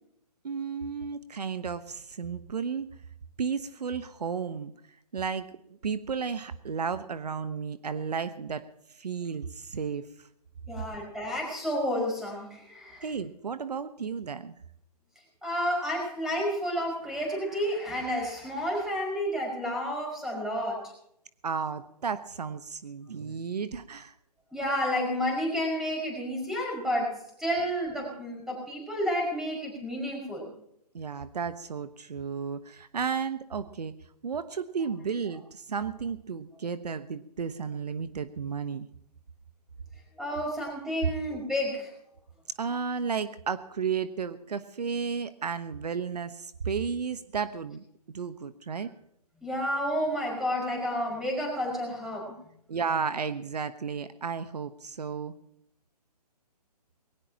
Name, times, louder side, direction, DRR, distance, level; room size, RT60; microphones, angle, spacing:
voice 1, 0.4-2.9 3.4-4.7 5.1-5.5 5.8-10.3 13.0-14.5 21.4-24.1 30.9-33.9 34.2-38.9 42.6-47.8 48.1-48.9 52.7-55.3, right 6 dB, 75° right, 12 dB, 1.1 m, -33 dB
voice 2, 10.7-13.1 15.4-20.9 24.5-30.5 40.2-41.9 49.4-52.4, equal, ahead, -1 dB, 5.6 m, -30 dB
21.0 x 18.0 x 2.9 m, 0.74 s
hypercardioid pair, 150°, 21 cm